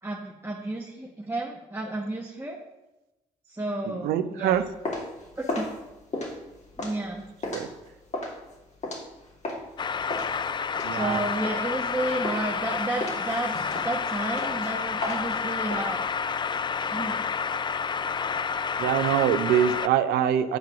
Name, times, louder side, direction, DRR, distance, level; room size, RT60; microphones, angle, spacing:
voice 1, 0.0-2.6 3.5-4.6 5.4-5.7 6.8-7.2 10.9-13.6 13.8-16.0 16.9-17.2, right 2 dB, 15° right, -1 dB, 1.3 m, -31 dB
voice 2, 3.9-4.6 7.5-7.7 10.8-11.2 18.8-20.6, right 10 dB, 70° right, 12 dB, 0.6 m, -24 dB
sound 1, 4.5-9.7 10.1-11.9 12.2-12.6 13.0-15.8, left 2 dB, 40° left, 2.6 m, -34 dB
sound 2, 9.8-19.9, left 6 dB, 25° left, 0.4 m, -29 dB
9.2 x 4.7 x 6.1 m, 1.0 s
hypercardioid pair, 50°, 17 cm